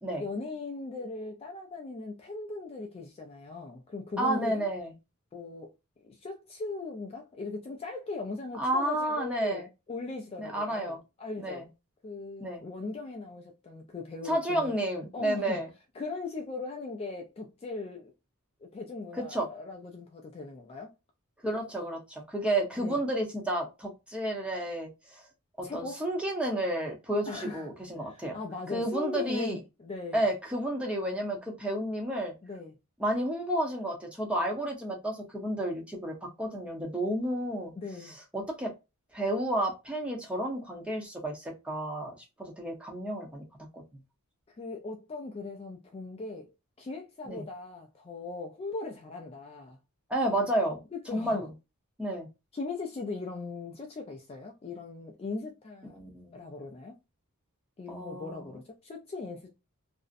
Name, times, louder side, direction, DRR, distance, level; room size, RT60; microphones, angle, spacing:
voice 1, 0.2-4.7 5.3-5.7 6.0-9.6 9.9-11.7 12.0-14.7 15.1-15.6 16.0-18.1 18.6-20.9 22.8-23.0 25.6-26.0 27.3-27.7 28.1-30.2 32.4-32.7 37.8-38.2 44.6-46.5 46.8-49.8 50.9-51.4 52.5-56.0 56.3-57.0 57.8-59.6, left 3 dB, 25° left, 0.3 m, -39 dB
voice 2, 4.2-4.9 8.6-9.7 10.4-11.0 11.4-11.6 12.4-12.6 14.2-15.7 19.3-19.5 21.4-25.2 25.6-28.4 28.7-29.6 30.1-32.3 33.0-37.7 38.3-38.7 39.1-42.1 42.4-43.4 43.7-43.8 47.3-47.4 50.1-50.8 51.1-51.5 52.0-52.3 55.8-56.6 57.9-58.4, right 1 dB, 5° right, 0.6 m, -31 dB
2.5 x 2.0 x 2.4 m
head